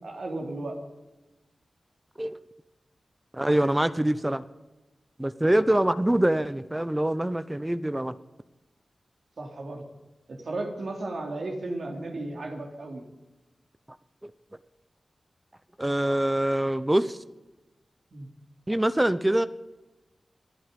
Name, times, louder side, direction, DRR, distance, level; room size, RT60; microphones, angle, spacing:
voice 1, 0.0-0.8 9.4-9.8 10.3-13.0 18.1-18.3, right 2 dB, 70° right, 2 dB, 3.2 m, -34 dB
voice 2, 3.3-4.4 5.2-8.2 15.8-17.2 18.7-19.5, right 1 dB, 15° right, 13 dB, 0.7 m, -24 dB
27.0 x 9.1 x 5.3 m, 1.1 s
cardioid pair, 55°, 0 cm